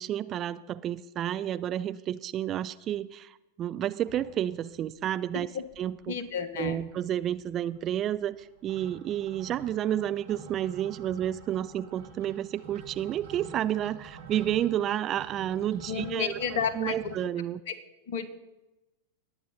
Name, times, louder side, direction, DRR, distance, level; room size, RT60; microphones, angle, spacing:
voice 1, 0.0-6.2 6.5-17.6, right 11 dB, 30° right, 14 dB, 0.4 m, -31 dB
sound 1, 4.0-4.9 5.3-5.4 5.6-6.3 6.5-17.1, right 5 dB, 60° right, 3.2 m, -48 dB
voice 2, 6.1-6.8 15.9-17.0 17.7-17.8 18.1-18.3, left 6 dB, 55° left, 12 dB, 1.2 m, -31 dB
20.5 x 8.8 x 4.1 m, 1.0 s
figure-of-eight pair, 90°, 0 cm